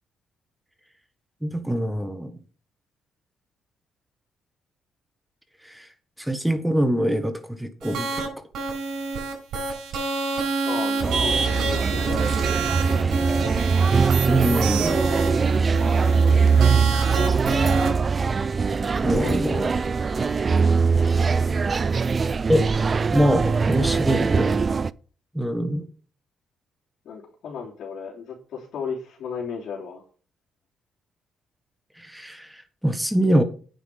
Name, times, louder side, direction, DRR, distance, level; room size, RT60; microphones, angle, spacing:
voice 1, 1.4-2.4 5.6-5.9 6.2-8.3 14.3-15.0 19.0-19.7 22.5-22.7 23.1-24.6 25.3-25.9 32.0-33.4, equal, 5° right, 9 dB, 1.3 m, -24 dB
sound 1, 7.8-8.3 8.5-17.9, right 3 dB, 80° right, 4.6 m, -28 dB
voice 2, 10.6-13.0 19.0-19.4 27.0-30.0, left 6 dB, 70° left, -4 dB, 3.4 m, -35 dB
sound 2, 11.0-24.9, right 5 dB, 35° right, 0.4 m, -21 dB
9.3 x 5.9 x 6.7 m, 0.40 s
cardioid pair, 90°, 0 cm